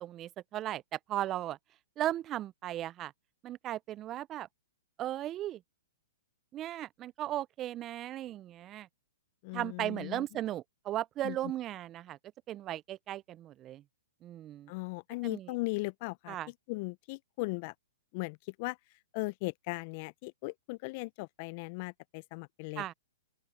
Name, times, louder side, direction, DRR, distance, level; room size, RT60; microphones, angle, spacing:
voice 1, 0.0-1.6 2.0-3.1 3.4-4.5 5.0-5.6 6.5-8.9 9.5-12.2 12.5-13.8 14.2-14.7 15.2-15.5 16.3-16.5 22.8-22.9, right 13 dB, 25° right, 0.5 m, -36 dB
voice 2, 9.4-10.3 11.2-11.4 14.7-16.4 16.7-17.7 18.1-18.8 19.1-22.9, left 26 dB, 45° left, 0.5 m, -38 dB
open air
hypercardioid pair, 125°, 0 cm